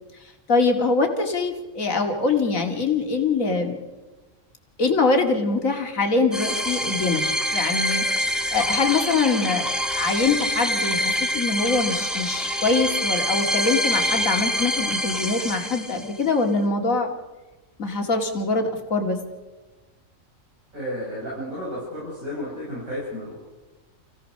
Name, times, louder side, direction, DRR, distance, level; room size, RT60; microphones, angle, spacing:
voice 1, 0.5-3.8 4.8-7.2 7.5-8.0 8.5-9.7 9.9-17.1 17.8-19.2, left 3 dB, 75° left, 4 dB, 2.7 m, -23 dB
sound 1, 6.3-16.2, equal, ahead, 2.0 m, -25 dB
voice 2, 20.7-23.4, equal, 85° right, -7 dB, 8.4 m, -32 dB
29.0 x 16.5 x 6.6 m, 1.2 s
omnidirectional pair, 1.4 m